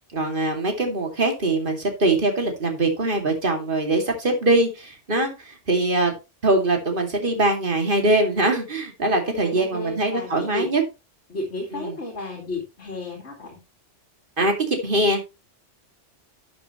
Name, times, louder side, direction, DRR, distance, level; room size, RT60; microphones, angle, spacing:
voice 1, 0.1-6.1 6.4-10.8 11.7-12.0 14.4-15.2, right 2 dB, 45° right, 4 dB, 2.5 m, -22 dB
voice 2, 9.3-10.7 11.3-13.6, left 1 dB, 65° left, 1 dB, 2.5 m, -32 dB
11.5 x 7.7 x 3.0 m, 0.26 s
omnidirectional pair, 1.2 m